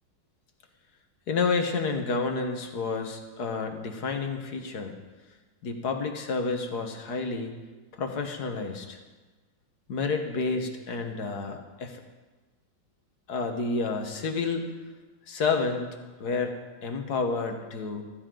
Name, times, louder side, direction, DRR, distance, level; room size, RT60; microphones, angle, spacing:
voice 1, 1.3-5.0 5.6-7.5 8.0-9.0 9.9-12.0 13.3-14.7 15.3-15.9 16.2-18.0, left 4 dB, 65° left, 5 dB, 1.8 m, -30 dB
15.0 x 14.5 x 3.9 m, 1.2 s
omnidirectional pair, 1.9 m